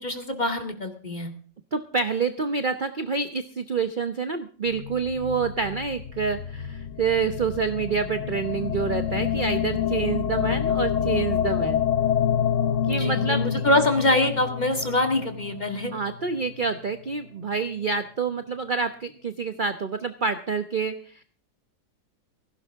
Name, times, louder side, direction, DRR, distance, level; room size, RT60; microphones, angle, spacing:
voice 1, 0.0-1.3 12.9-15.9, left 1 dB, 25° left, 6 dB, 2.2 m, -24 dB
voice 2, 1.7-11.8 12.9-13.4 15.9-21.2, right 5 dB, 40° right, 10 dB, 0.8 m, -27 dB
sound 1, 4.7-16.9, left 9 dB, 55° left, 1.0 m, -28 dB
17.0 x 16.0 x 3.6 m, 0.43 s
omnidirectional pair, 1.9 m